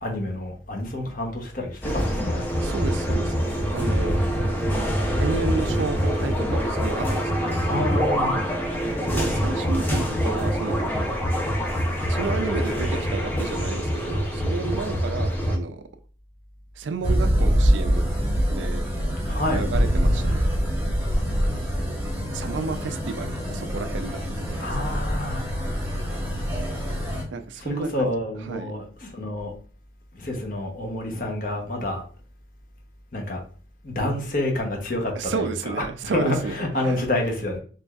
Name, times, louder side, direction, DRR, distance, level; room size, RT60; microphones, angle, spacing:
voice 1, 0.0-2.5 7.7-8.5 19.3-19.6 24.6-25.4 27.6-29.5 30.2-32.0 33.1-33.4 33.8-35.8 36.1-37.6, left 1 dB, 45° left, 0.8 m, -28 dB
ms pacman, 1.8-15.6, equal, 10° left, 0.5 m, -25 dB
voice 2, 2.6-3.4 3.7-4.2 5.2-7.9 9.1-10.8 12.1-15.8 16.8-18.0 18.5-18.8 19.5-20.4 22.3-24.8 27.3-28.1 28.5-28.7 35.1-37.0, right 4 dB, 70° right, 0.4 m, -31 dB
sound 1, 17.0-27.2, equal, 10° right, 0.9 m, -24 dB
3.9 x 3.1 x 2.3 m
head